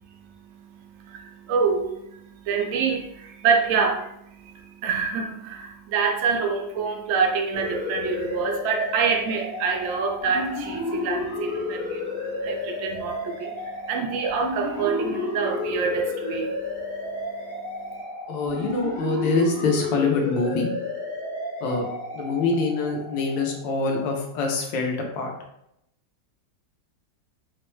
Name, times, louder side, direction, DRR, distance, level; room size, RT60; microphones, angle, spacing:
voice 1, 0.0-18.0, right 5 dB, 85° right, 2 dB, 0.7 m, -27 dB
sound 1, 7.5-23.9, left 2 dB, 60° left, 0.5 m, -32 dB
voice 2, 18.3-20.7 21.6-21.9 22.1-25.3, left 3 dB, 80° left, 1 dB, 1.4 m, -25 dB
4.3 x 2.2 x 3.0 m, 0.79 s
omnidirectional pair, 2.0 m